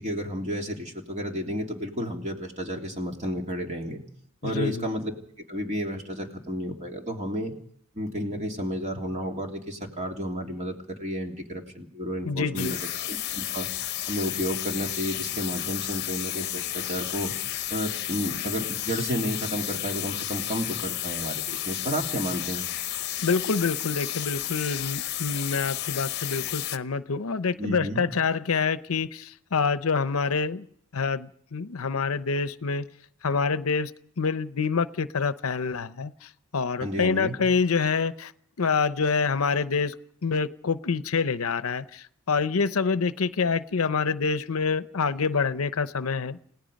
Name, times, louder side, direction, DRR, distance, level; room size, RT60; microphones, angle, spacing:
voice 1, 0.0-4.0 4.4-5.1 5.5-7.5 7.9-12.8 13.1-13.7 14.1-17.3 17.7-22.6 27.6-28.0 36.8-37.4, equal, 35° right, 1 dB, 3.2 m, -31 dB
voice 2, 4.4-4.8 12.2-12.7 23.2-30.6 30.9-32.9 33.2-33.9 34.2-38.3 38.6-39.9 40.2-46.4, left 5 dB, 85° left, 13 dB, 0.8 m, -26 dB
sound 1, 12.6-26.8, left 12 dB, 50° left, 0.9 m, -32 dB
29.5 x 17.5 x 5.3 m, 0.66 s
head